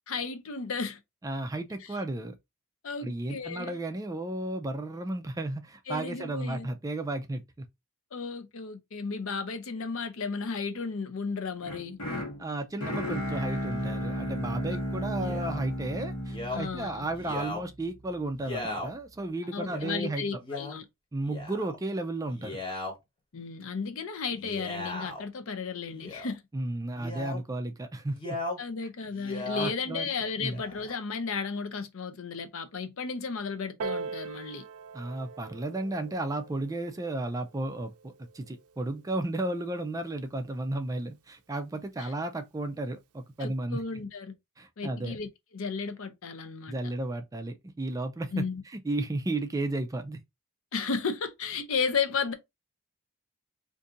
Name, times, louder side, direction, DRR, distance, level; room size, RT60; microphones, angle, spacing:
voice 1, 0.1-1.0 2.8-3.8 5.9-6.7 8.1-12.0 16.5-17.1 19.5-20.8 23.3-26.4 28.6-34.6 42.0-42.1 43.4-44.3 44.8-45.3 45.5-46.8 48.3-48.6 50.7-52.3, left 5 dB, 60° left, 0.6 m, -34 dB
voice 2, 1.2-2.4 3.0-7.7 12.4-20.2 21.1-22.6 26.5-28.4 29.5-30.1 30.4-30.6 34.9-43.8 44.6-45.2 46.7-50.2, right 2 dB, 15° right, 0.3 m, -33 dB
sound 1, 11.6-17.7, equal, 85° left, 1.2 m, -34 dB
Male speech man speaking, 15.2-15.6 16.3-16.6 17.1-17.6 18.4-18.9 19.6-19.9 20.4-20.8 21.2-21.8 22.3-22.9 24.3-25.2 25.9-26.3 27.0-27.4 28.1-28.6 29.0-29.7 30.4-30.9, left 2 dB, 20° left, 1.0 m, -37 dB
Piano, 33.8-39.0 39.8-39.9, right 5 dB, 80° right, 0.5 m, -42 dB
2.6 x 2.6 x 3.6 m
head